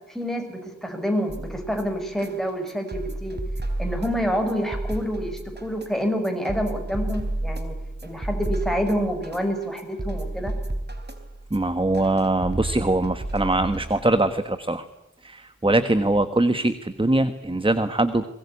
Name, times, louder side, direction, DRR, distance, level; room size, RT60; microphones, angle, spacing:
voice 1, 0.1-3.4 3.8-7.8 8.0-10.5, equal, ahead, 5 dB, 6.0 m, -27 dB
sound 1, 1.3-14.3, right 1 dB, 35° right, 4.0 m, -32 dB
voice 2, 11.5-14.8 15.2-18.3, right 2 dB, 15° right, 10 dB, 1.4 m, -22 dB
24.0 x 21.0 x 9.8 m, 0.85 s
wide cardioid pair, 80°, 30 cm